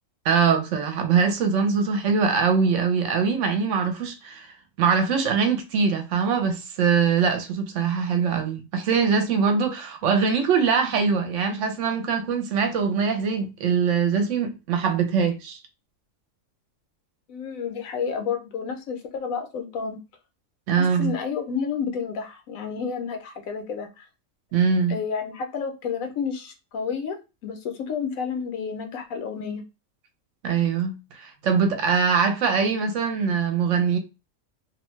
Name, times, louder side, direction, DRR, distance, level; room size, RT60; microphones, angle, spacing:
voice 1, 0.2-4.5 4.8-15.6 20.7-21.1 24.5-25.0 30.4-34.0, right 6 dB, 70° right, 0.9 m, -22 dB
voice 2, 17.3-20.0 20.7-24.0 24.9-27.2 27.4-29.6, left 6 dB, 80° left, 1.1 m, -30 dB
2.6 x 2.2 x 3.0 m
omnidirectional pair, 1.4 m